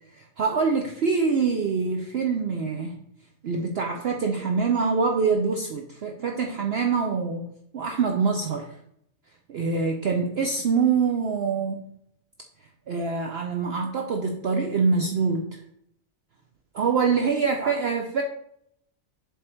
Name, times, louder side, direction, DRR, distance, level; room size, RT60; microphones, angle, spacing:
voice 1, 0.1-3.0 3.4-7.5 7.7-8.8 9.5-11.9 12.9-15.5 16.7-18.2, right 5 dB, 60° right, 3 dB, 0.7 m, -25 dB
7.5 x 3.5 x 4.4 m, 0.73 s
omnidirectional pair, 1.4 m